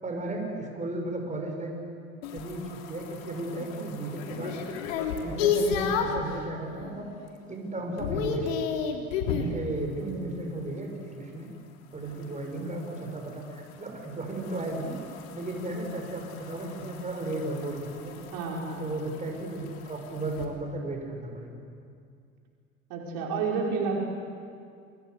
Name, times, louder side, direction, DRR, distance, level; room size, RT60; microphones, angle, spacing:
voice 1, 0.0-1.7 2.3-4.6 5.2-7.1 7.5-8.6 9.4-11.5 11.9-14.9 15.3-18.2 18.8-21.5, right 2 dB, 15° right, 1 dB, 7.0 m, -35 dB
sound 1, 2.2-6.3 6.8-7.2 7.5-9.6 12.1-20.5, left 6 dB, 70° left, 3.6 m, -33 dB
voice 2, 10.0-10.4 12.5-12.7 18.3-19.0 22.9-24.0, right 4 dB, 55° right, -2 dB, 5.7 m, -31 dB
29.0 x 24.5 x 8.4 m, 2.3 s
hypercardioid pair, 80°, 41 cm